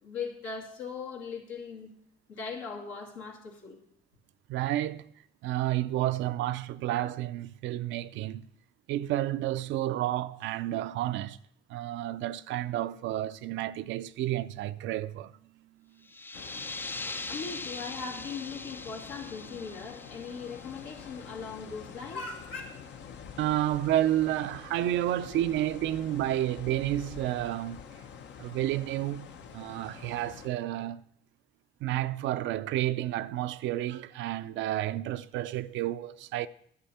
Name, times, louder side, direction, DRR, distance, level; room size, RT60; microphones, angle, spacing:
voice 1, 0.0-1.9 2.3-3.8 17.3-22.6, left 5 dB, 85° left, 2.5 m, -39 dB
voice 2, 4.5-5.0 5.4-8.4 8.9-11.4 11.7-16.1 23.4-27.8 28.4-31.0 31.8-36.5, right 13 dB, 75° right, 0.5 m, -31 dB
sound 1, 16.0-21.4, left 3 dB, 10° left, 0.3 m, -41 dB
sound 2, 16.3-30.5, left 7 dB, 65° left, 0.9 m, -47 dB
10.5 x 9.6 x 4.3 m
supercardioid pair, 65°, 20 cm